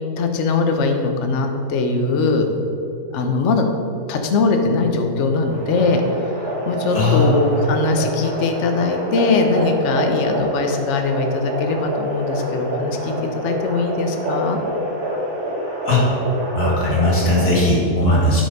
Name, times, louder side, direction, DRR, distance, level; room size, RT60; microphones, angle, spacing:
voice 1, 0.2-2.4 3.1-3.6 4.1-6.0 6.7-13.1 13.4-14.6, left 3 dB, 55° left, 4 dB, 1.0 m, -20 dB
sound 1, 5.5-17.7, right 1 dB, 70° right, 2.0 m, -26 dB
voice 2, 6.9-7.4 15.9-16.0 16.5-18.4, left 1 dB, 70° left, -4 dB, 2.7 m, -18 dB
9.4 x 5.3 x 5.4 m, 2.7 s
omnidirectional pair, 1.7 m